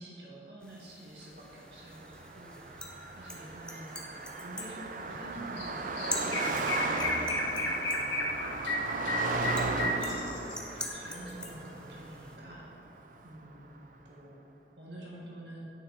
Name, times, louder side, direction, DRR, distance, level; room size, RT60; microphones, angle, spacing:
voice 1, 0.0-4.1 4.4-8.6 8.9-13.0 13.2-13.7 14.1-14.4 14.8-15.6, right 1 dB, 70° right, -4 dB, 1.7 m, -48 dB
sound 1, 0.6-12.4, left 2 dB, 5° left, 0.5 m, -45 dB
Car passing by, 1.8-13.4, right 3 dB, 45° right, 0.4 m, -36 dB
Chirp tweet, 5.6-5.7 6.0-10.5, left 2 dB, 90° left, 1.3 m, -32 dB
9.3 x 6.1 x 4.1 m, 2.9 s
head